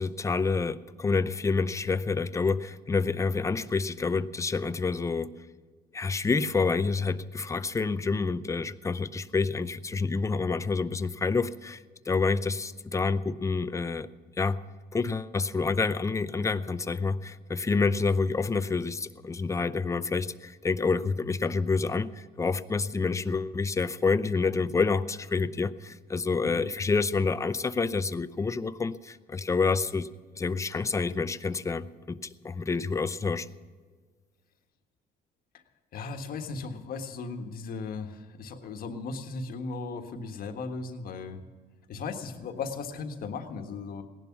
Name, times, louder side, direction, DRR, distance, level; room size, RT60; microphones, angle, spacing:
voice 1, 0.0-5.3 5.9-11.8 12.1-14.1 14.4-14.6 14.9-30.1 30.4-32.2 32.4-33.5, left 4 dB, 20° left, 13 dB, 0.6 m, -28 dB
voice 2, 35.9-41.4 41.9-44.0, left 4 dB, 60° left, 6 dB, 1.5 m, -37 dB
17.5 x 11.5 x 5.9 m, 1.5 s
cardioid pair, 110°, 17 cm